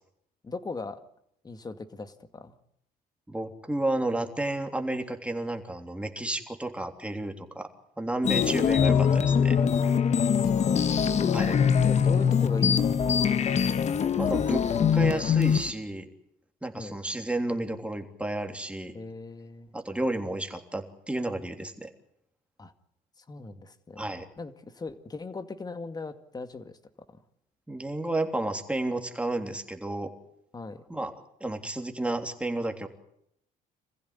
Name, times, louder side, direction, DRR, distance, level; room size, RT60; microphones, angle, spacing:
voice 1, 0.4-1.0 1.4-2.6 8.4-9.1 10.4-11.4 11.9-13.1 13.4-13.5 16.7-17.0 18.9-19.7 22.6-22.7 23.2-24.0 24.4-26.8 30.5-30.8, left 3 dB, 25° left, 10 dB, 2.2 m, -39 dB
voice 2, 3.3-7.7 8.0-9.6 11.3-11.6 14.2-14.7 14.9-16.1 16.6-18.9 19.7-21.9 24.0-24.3 27.7-30.1 30.9-31.1 31.4-32.9, right 2 dB, 5° right, 5 dB, 3.3 m, -31 dB
sound 1, 8.2-15.7, left 7 dB, 40° left, 1.4 m, -23 dB
26.5 x 15.5 x 9.7 m, 0.76 s
cardioid pair, 110°, 17 cm